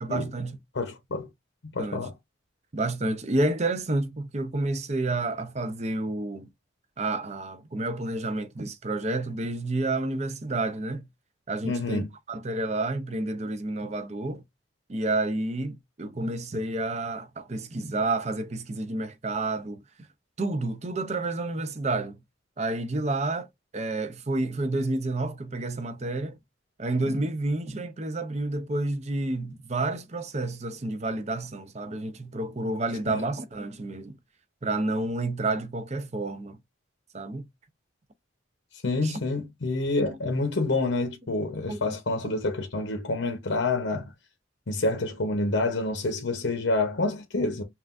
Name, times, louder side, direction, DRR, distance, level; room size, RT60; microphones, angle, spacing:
voice 1, 0.0-0.5 1.8-2.0 2.7-6.5 7.0-11.1 11.5-12.0 12.3-14.4 14.9-19.8 20.4-22.2 22.6-23.5 23.7-26.4 26.8-34.1 34.6-36.6 37.1-37.4 39.0-39.2 40.0-40.2 41.7-41.8, right 2 dB, 35° right, 0.6 m, -30 dB
voice 2, 0.7-1.3 1.6-2.1 11.6-12.1 33.1-33.3 38.8-44.0 44.7-47.6, left 2 dB, 70° left, 0.8 m, -28 dB
5.5 x 2.5 x 2.5 m
head